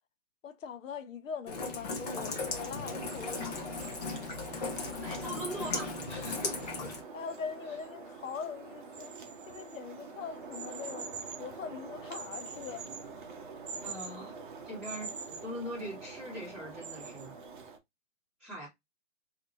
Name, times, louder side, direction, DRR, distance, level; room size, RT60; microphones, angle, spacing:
voice 1, 0.4-3.8 7.1-9.1 9.5-12.8, left 6 dB, 80° left, 0.7 m, -42 dB
Rain, 1.5-7.0, left 3 dB, 30° left, 0.7 m, -37 dB
sound 1, 2.0-17.8, right 4 dB, 40° right, 0.6 m, -44 dB
voice 2, 4.7-6.9 10.1-10.2 13.8-14.3 14.6-17.3 18.4-18.7, equal, ahead, 1.2 m, -42 dB
2.7 x 2.6 x 3.5 m
hypercardioid pair, 155°, 39 cm